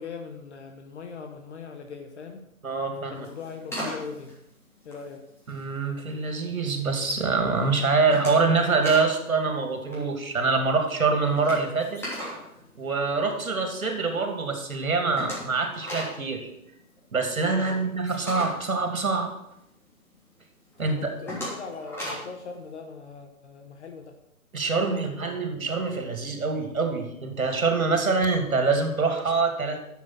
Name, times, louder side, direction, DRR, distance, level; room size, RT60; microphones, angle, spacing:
voice 1, 0.0-2.4 3.1-4.4 4.8-5.2 17.6-17.9 20.8-24.1 24.6-25.4, left 5 dB, 50° left, 5 dB, 1.3 m, -40 dB
voice 2, 2.6-3.3 5.5-12.0 12.8-16.5 17.1-19.3 20.8-21.1 24.5-29.8, right 4 dB, 70° right, 5 dB, 2.6 m, -25 dB
sound 1, 3.1-5.7 6.1-6.7 7.0-7.4 7.7-9.2 9.4-9.6 9.8-13.6 14.0-14.1 14.4-14.5 14.7-19.7 20.1-20.2 20.7-22.4, equal, 5° left, 3.2 m, -38 dB
11.0 x 7.3 x 6.1 m, 0.83 s
figure-of-eight pair, 130°, 43 cm